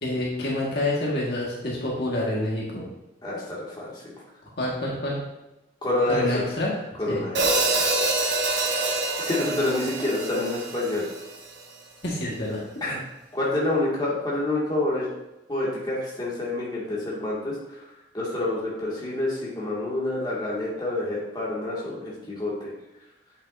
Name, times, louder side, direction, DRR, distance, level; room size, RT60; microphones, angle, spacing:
voice 1, 0.0-2.8 4.6-5.2 6.1-6.7 7.1-7.2 12.0-12.6, left 1 dB, 60° left, -4 dB, 1.7 m, -27 dB
voice 2, 3.2-4.0 5.8-6.4 7.0-7.8 9.2-11.1 12.8-13.0 13.3-15.1 15.5-17.8 18.1-22.7, left 2 dB, 25° left, -6 dB, 2.2 m, -28 dB
Hi-hat, 7.3-11.5, right 2 dB, 65° right, 1.2 m, -26 dB
8.2 x 7.4 x 2.7 m, 0.98 s
head